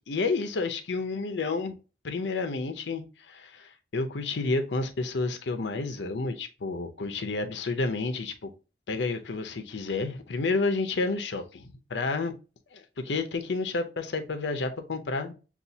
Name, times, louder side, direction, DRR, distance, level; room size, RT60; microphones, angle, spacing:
voice 1, 0.1-1.7 2.0-8.5 8.9-12.3 12.7-15.3, left 3 dB, 80° left, 0.6 m, -30 dB
6.9 x 2.4 x 2.7 m
head